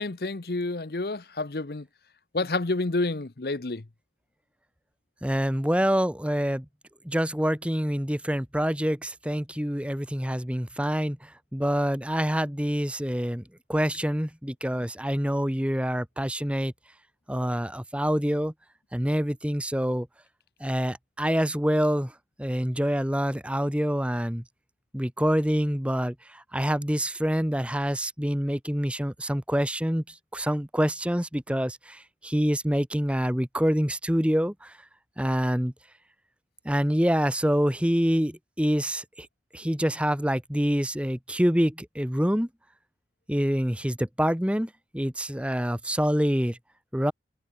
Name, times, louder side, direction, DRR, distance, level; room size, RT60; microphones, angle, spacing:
voice 1, 0.0-1.8 2.3-3.8, left 2 dB, 60° left, 0.9 m, -29 dB
voice 2, 5.2-6.6 7.0-11.2 11.5-13.4 13.7-16.7 17.3-18.5 18.9-20.1 20.6-22.1 22.4-24.4 24.9-30.0 30.3-34.7 35.2-35.7 36.6-39.3 39.5-42.5 43.3-46.6 46.9-47.1, equal, 5° right, 1.3 m, -26 dB
head